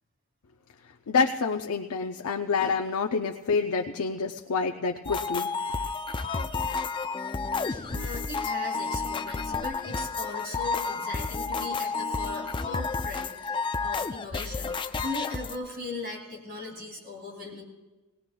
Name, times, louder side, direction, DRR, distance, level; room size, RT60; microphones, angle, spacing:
voice 1, 1.1-5.9, left 5 dB, 90° left, 4 dB, 0.5 m, -28 dB
sound 1, 5.0-15.6, left 4 dB, 20° left, 0.4 m, -31 dB
voice 2, 7.7-17.6, left 2 dB, 45° right, -1 dB, 2.9 m, -39 dB
19.5 x 18.5 x 2.3 m, 1.2 s
head